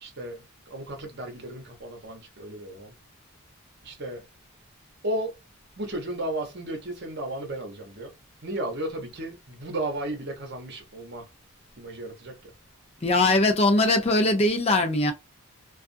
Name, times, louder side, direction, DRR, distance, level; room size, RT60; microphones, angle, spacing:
voice 1, 0.0-2.9 3.8-4.2 5.0-5.4 5.8-8.1 8.4-11.3 11.8-12.4, right 1 dB, 50° right, 0.9 m, -34 dB
voice 2, 13.0-15.1, left 2 dB, 30° left, 0.5 m, -21 dB
2.4 x 2.3 x 2.6 m
head